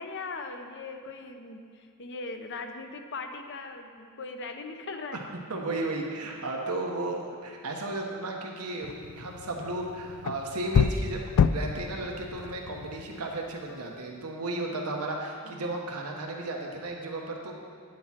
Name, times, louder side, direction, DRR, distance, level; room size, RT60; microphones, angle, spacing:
voice 1, 0.0-5.2 13.7-13.9 15.4-15.8, left 3 dB, 55° left, 5 dB, 0.8 m, -40 dB
voice 2, 5.5-17.5, right 2 dB, 85° right, 0 dB, 1.2 m, -34 dB
sound 1, 8.8-13.7, left 6 dB, 75° left, 0.3 m, -29 dB
9.4 x 7.9 x 4.4 m, 2.3 s
head